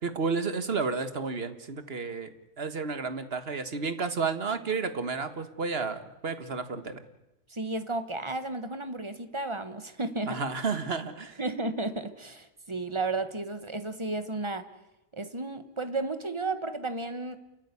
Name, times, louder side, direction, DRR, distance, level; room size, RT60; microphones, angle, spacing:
voice 1, 0.0-7.0 10.3-11.4, right 4 dB, 50° right, 10 dB, 1.6 m, -32 dB
voice 2, 7.5-10.4 11.4-14.6 15.1-17.4, right 2 dB, 20° right, 10 dB, 1.3 m, -33 dB
28.5 x 14.0 x 9.8 m, 0.95 s
omnidirectional pair, 1.4 m